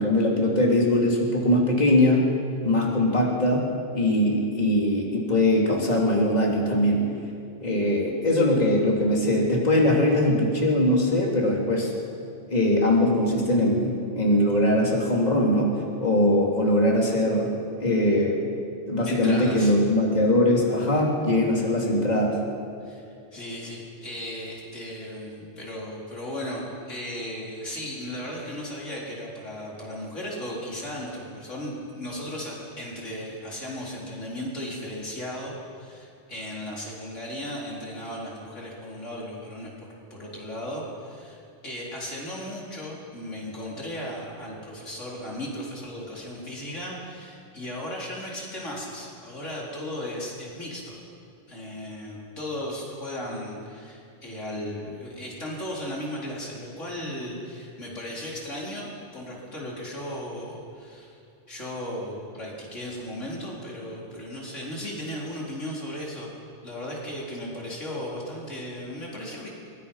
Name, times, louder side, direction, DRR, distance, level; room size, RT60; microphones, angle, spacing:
voice 1, 0.0-2.3 2.6-3.7 3.9-7.0 7.6-11.9 12.5-15.7 16.0-17.5 17.8-18.4 18.9-22.4, left 1 dB, 35° left, -2 dB, 3.3 m, -21 dB
voice 2, 19.1-19.7 22.8-23.0 23.3-51.0 51.5-61.2 61.5-66.3 66.6-69.5, left 1 dB, 85° left, -4 dB, 4.8 m, -36 dB
23.5 x 23.0 x 5.7 m, 2.5 s
omnidirectional pair, 1.2 m